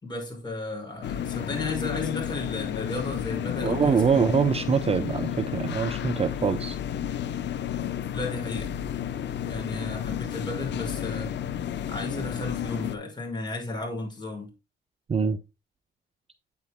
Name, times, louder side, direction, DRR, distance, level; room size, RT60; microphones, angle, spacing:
voice 1, 0.0-4.2 8.1-8.8 9.4-11.3 11.9-14.5, left 2 dB, 20° left, 5.6 m, -34 dB
sound 1, 1.0-13.0, left 9 dB, 65° left, 0.8 m, -32 dB
voice 2, 3.6-6.8 15.1-15.4, right 6 dB, 30° right, 0.6 m, -24 dB
8.9 x 8.8 x 2.2 m
cardioid pair, 90°, 20 cm